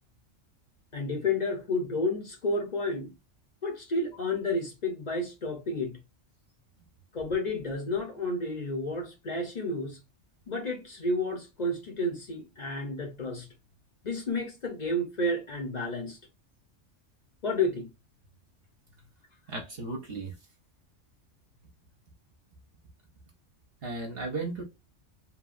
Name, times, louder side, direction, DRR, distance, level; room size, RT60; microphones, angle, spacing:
voice 1, 0.9-3.1 3.6-6.0 7.1-10.0 10.5-13.5 14.0-16.2 17.4-17.9, left 2 dB, 40° left, 0.7 m, -31 dB
voice 2, 19.5-20.3 23.8-24.6, right 3 dB, 60° right, 0.9 m, -35 dB
3.0 x 2.3 x 2.4 m
omnidirectional pair, 1.3 m